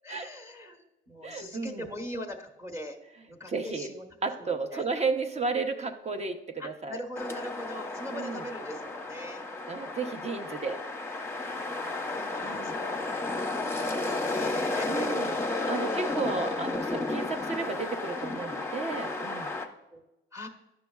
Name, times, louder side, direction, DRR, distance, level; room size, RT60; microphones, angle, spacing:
voice 1, 0.0-3.0 3.3-4.1 4.4-4.9 6.6-9.4 11.7-15.1 15.8-16.5 19.9-20.0 20.3-20.5, left 1 dB, 15° right, 2 dB, 1.1 m, -41 dB
voice 2, 1.2-1.8 3.5-3.9 4.2-7.0 8.1-8.4 9.7-10.8 12.4-12.7 14.9-15.3 15.7-19.5, right 4 dB, 35° right, 7 dB, 0.7 m, -33 dB
sound 1, 7.2-19.7, left 2 dB, 10° left, 0.8 m, -33 dB
10.0 x 6.4 x 2.3 m, 0.92 s
cardioid pair, 90°, 20 cm